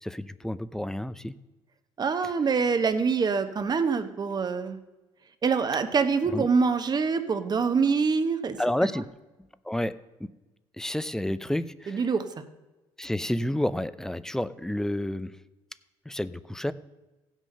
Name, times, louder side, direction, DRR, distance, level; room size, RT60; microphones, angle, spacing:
voice 1, 0.0-1.3 6.3-6.5 8.6-9.1 9.7-9.9 10.2-10.3 10.8-12.0 13.0-15.3 16.1-16.7, left 1 dB, 5° left, 15 dB, 0.5 m, -30 dB
voice 2, 2.0-4.8 5.4-8.6 11.9-12.3, right 5 dB, 35° right, 9 dB, 1.1 m, -25 dB
16.0 x 6.3 x 5.5 m, 1.1 s
supercardioid pair, 70°, 12 cm